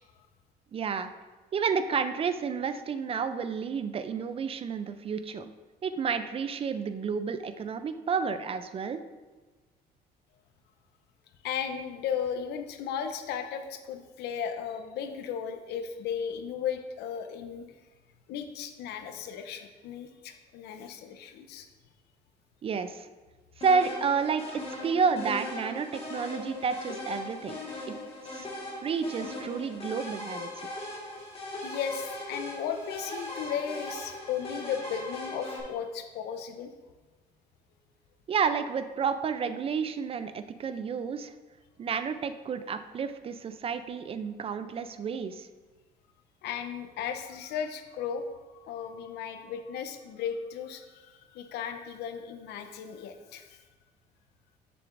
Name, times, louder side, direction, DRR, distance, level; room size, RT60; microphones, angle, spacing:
voice 1, 0.7-1.1 1.5-5.5 5.8-9.0 22.6-23.1 23.6-24.4 24.8-27.6 27.9-28.0 28.3-28.5 28.8-30.5 38.3-41.3 41.8-45.5, right 6 dB, 35° right, 10 dB, 0.4 m, -30 dB
voice 2, 11.4-17.6 18.3-21.7 31.6-36.7 46.4-48.3 48.5-53.6, left 7 dB, 80° left, 7 dB, 0.7 m, -35 dB
sound 1, 23.6-35.6, left 1 dB, 35° left, 1.6 m, -39 dB
6.9 x 6.7 x 2.5 m, 1.3 s
cardioid pair, 110°, 17 cm